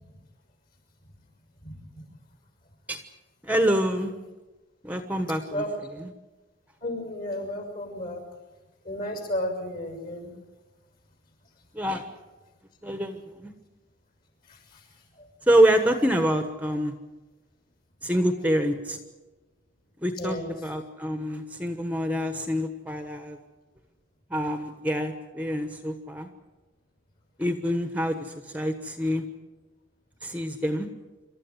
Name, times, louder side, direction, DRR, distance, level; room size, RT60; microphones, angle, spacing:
voice 1, 3.4-4.1 4.8-5.6 6.0-6.1 11.7-12.0 12.8-13.5 15.5-16.9 18.0-19.0 20.0-23.4 24.3-26.3 27.4-29.2 30.2-30.9, equal, 5° right, 7 dB, 1.2 m, -26 dB
voice 2, 6.8-8.2 8.8-10.3 14.5-14.8 20.2-20.5, left 1 dB, 45° left, 4 dB, 6.4 m, -33 dB
27.0 x 13.5 x 9.7 m, 1.2 s
head